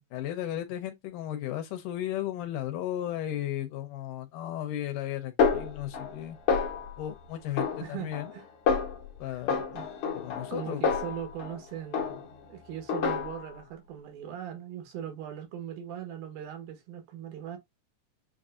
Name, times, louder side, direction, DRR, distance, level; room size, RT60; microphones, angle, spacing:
voice 1, 0.0-6.4 7.0-8.3 9.2-9.9 10.1-10.8, left 12 dB, 75° left, 2.2 m, -35 dB
Snare drum, 5.4-6.2 6.5-7.1 7.6-8.4 8.7-9.1 9.5-11.6 11.9-12.5 12.9-13.6, left 5 dB, 60° left, 1.4 m, -29 dB
voice 2, 7.5-8.5 9.3-9.4 9.7-9.9 10.5-12.2 12.5-17.6, right 9 dB, 85° right, 3.1 m, -40 dB
7.2 x 2.6 x 2.4 m
omnidirectional pair, 4.0 m